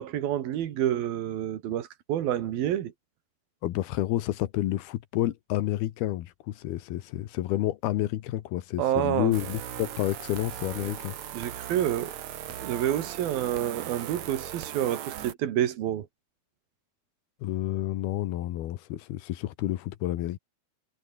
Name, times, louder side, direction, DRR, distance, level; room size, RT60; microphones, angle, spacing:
voice 1, 0.0-2.9 8.8-9.4 11.3-12.1 12.6-16.1, right 11 dB, 75° right, 3.5 m, -28 dB
voice 2, 3.6-11.2 17.4-20.4, left 14 dB, 85° left, 3.2 m, -30 dB
sound 1, 9.3-15.3, right 11 dB, 55° right, 2.4 m, -38 dB
omnidirectional pair, 4.3 m